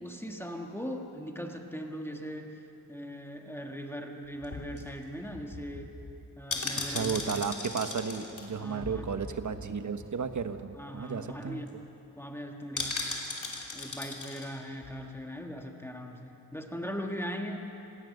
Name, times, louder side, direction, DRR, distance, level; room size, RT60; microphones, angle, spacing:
voice 1, 0.0-2.6 2.9-5.9 6.4-7.2 8.5-9.3 10.8-11.7 12.2-13.2 13.7-17.6, equal, 5° left, 2 dB, 1.6 m, -40 dB
sound 1, 4.4-9.7 10.0-10.1 10.3-10.6 11.0-11.1 11.3-11.7 12.8-14.5 14.8-14.9, left 3 dB, 45° left, 3.0 m, -38 dB
voice 2, 6.9-11.6, right 6 dB, 45° right, 9 dB, 1.1 m, -33 dB
27.0 x 17.5 x 6.7 m, 3.0 s
wide cardioid pair, 140°, 41 cm